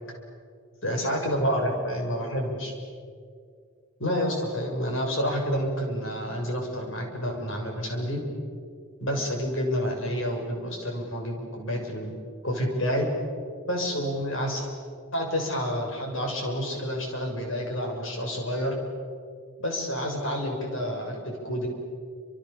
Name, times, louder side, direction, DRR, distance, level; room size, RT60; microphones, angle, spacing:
voice 1, 0.8-2.7 4.0-8.2 9.0-12.2 12.4-13.1 13.6-14.7 15.1-18.8 19.6-21.7, equal, 60° left, 1 dB, 6.9 m, -29 dB
30.0 x 28.0 x 7.2 m, 2.2 s
head